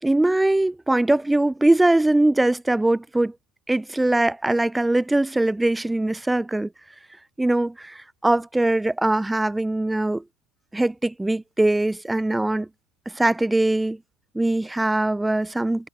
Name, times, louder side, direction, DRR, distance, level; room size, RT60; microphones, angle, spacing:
voice 1, 0.0-3.3 3.7-6.7 7.4-10.2 10.7-12.7 13.0-14.0 14.3-15.9, right 2 dB, 5° right, 4.8 m, -21 dB
figure-of-eight pair, 90°, 0 cm